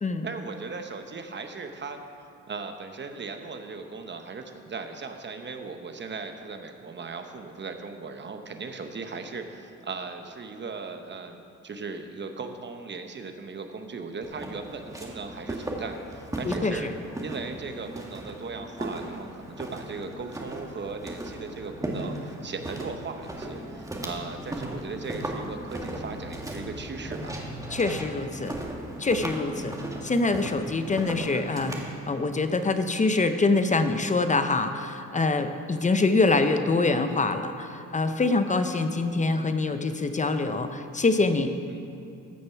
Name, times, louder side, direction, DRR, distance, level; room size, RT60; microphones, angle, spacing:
voice 1, 0.2-2.0 2.5-16.9 17.2-27.3 29.5-29.8 38.7-38.9 41.7-41.8, right 4 dB, 35° right, 6 dB, 1.0 m, -38 dB
Walk footsteps, 14.2-31.9, right 1 dB, 10° right, 1.6 m, -37 dB
voice 2, 16.4-16.9 27.7-28.5 29.0-29.7 30.0-31.8 32.1-41.5, left 3 dB, 25° left, 8 dB, 0.7 m, -25 dB
14.0 x 6.6 x 5.7 m, 2.7 s
cardioid pair, 90°, 30 cm